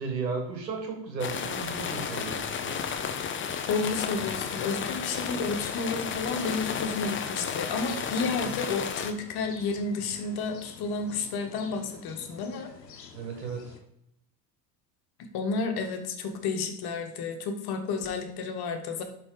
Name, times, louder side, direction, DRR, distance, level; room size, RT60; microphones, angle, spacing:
voice 1, 0.0-2.8 13.1-13.6, right 4 dB, 90° right, 3 dB, 2.0 m, -34 dB
sound 1, 1.2-9.1, left 7 dB, 25° left, 0.8 m, -33 dB
voice 2, 3.7-12.7 15.2-19.0, left 4 dB, 50° left, 5 dB, 1.5 m, -31 dB
sound 2, 4.1-13.8, left 6 dB, 85° left, 1.2 m, -47 dB
12.0 x 4.1 x 3.9 m, 0.75 s
hypercardioid pair, 80°, 49 cm